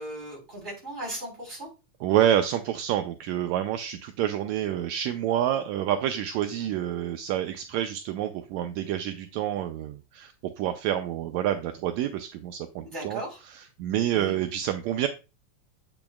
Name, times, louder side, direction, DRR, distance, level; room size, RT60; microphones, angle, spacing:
voice 1, 0.0-1.7 6.5-6.7 12.8-13.4 14.1-14.4, right 1 dB, 15° right, -2 dB, 3.8 m, -37 dB
voice 2, 2.0-13.2 13.8-15.1, right 11 dB, 80° right, 7 dB, 1.6 m, -28 dB
8.8 x 6.0 x 2.3 m, 0.30 s
omnidirectional pair, 3.6 m